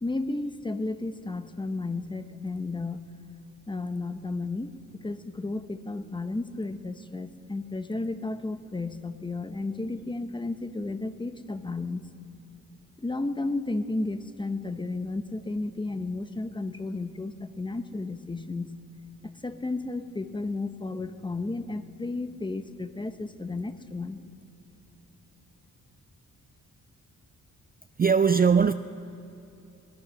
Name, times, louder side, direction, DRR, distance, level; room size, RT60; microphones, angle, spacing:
voice 1, 0.0-3.0 3.7-12.1 13.0-18.7 19.4-24.2, left 2 dB, 15° left, 0.9 m, -33 dB
voice 2, 28.0-28.7, right 6 dB, 30° right, 0.4 m, -20 dB
22.0 x 19.0 x 6.4 m
wide cardioid pair, 125°, 31 cm